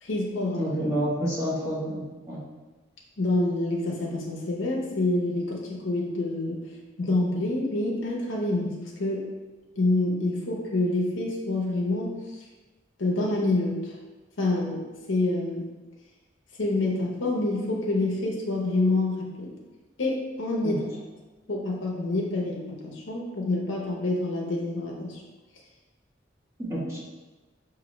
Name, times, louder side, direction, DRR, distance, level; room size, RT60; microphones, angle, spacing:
voice 1, 0.0-0.7 3.2-6.6 7.0-9.2 9.8-12.4 13.0-14.0 14.4-15.7 16.6-19.5 20.0-20.8 21.5-25.2, left 2 dB, 75° left, -2 dB, 0.7 m, -27 dB
voice 2, 0.6-2.4 20.6-20.8 26.7-27.0, equal, 15° right, -8 dB, 1.1 m, -29 dB
5.0 x 2.7 x 3.1 m, 1.2 s
head